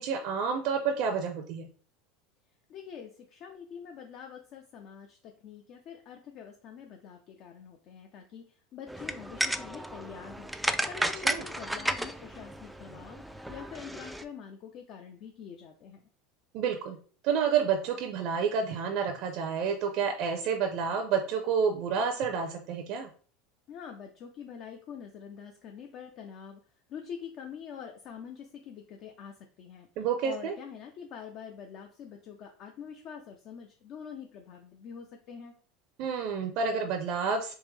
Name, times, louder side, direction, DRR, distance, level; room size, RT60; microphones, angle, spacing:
voice 1, 0.0-1.7 11.2-11.4 16.5-17.0 17.2-23.1 30.0-30.5 36.0-37.5, right 6 dB, 55° right, 4 dB, 0.5 m, -29 dB
voice 2, 2.7-10.5 10.9-16.0 23.7-26.6 26.9-29.9 30.2-35.5, left 7 dB, 50° left, 3 dB, 0.5 m, -45 dB
sound 1, 8.9-14.2, right 1 dB, 5° right, 0.3 m, -33 dB
3.6 x 2.9 x 3.2 m, 0.42 s
supercardioid pair, 120°, 0 cm